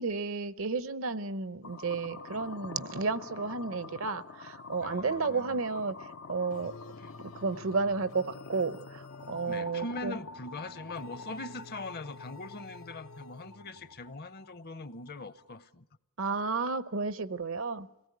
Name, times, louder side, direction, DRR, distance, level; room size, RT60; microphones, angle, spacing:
voice 1, 0.0-5.9 6.3-6.7 7.4-10.1 16.2-17.9, right 4 dB, 70° right, 0.9 m, -32 dB
sound 1, 1.6-15.6, left 4 dB, 85° left, 0.8 m, -47 dB
voice 2, 4.8-5.6 6.9-7.1 9.5-15.9, left 2 dB, 50° left, 0.8 m, -42 dB
sound 2, 6.5-14.0, left 3 dB, 70° left, 1.1 m, -51 dB
25.0 x 18.5 x 9.5 m
head